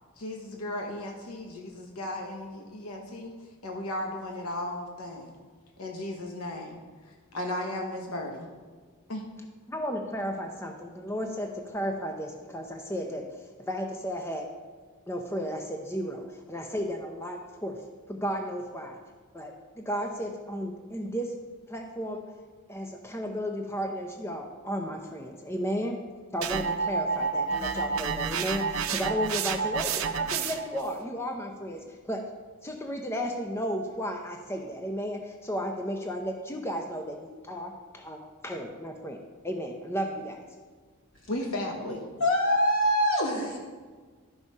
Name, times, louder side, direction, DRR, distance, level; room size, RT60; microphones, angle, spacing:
voice 1, 0.2-3.3 3.6-5.3 5.8-6.8 7.0-8.5 9.1-9.3 41.3-42.0, left 1 dB, 90° left, 1 dB, 1.0 m, -35 dB
voice 2, 9.7-13.2 13.6-14.5 15.1-17.8 18.1-19.0 19.3-21.3 21.7-22.3 22.7-26.0 26.3-32.2 32.6-40.4, equal, 10° left, 3 dB, 0.6 m, -34 dB
sound 1, 26.4-30.8, right 5 dB, 70° right, 0.7 m, -29 dB
voice 3, 42.2-43.6, equal, 65° left, -3 dB, 2.5 m, -24 dB
12.5 x 4.8 x 5.4 m, 1.5 s
head